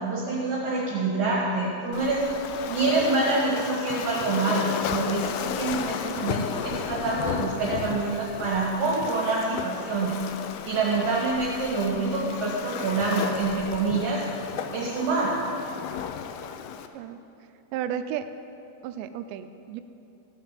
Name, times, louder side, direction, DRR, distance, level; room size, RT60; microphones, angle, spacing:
voice 1, 0.0-2.2 2.7-10.2 10.7-14.2 14.7-15.3, right 3 dB, 60° right, -4 dB, 2.9 m, -26 dB
Waves surf, 1.9-16.9, left 8 dB, 80° left, 2.4 m, -34 dB
voice 2, 17.7-18.3 18.8-19.8, right 10 dB, 85° right, 10 dB, 2.8 m, -33 dB
16.0 x 7.4 x 7.5 m, 2.7 s
omnidirectional pair, 5.1 m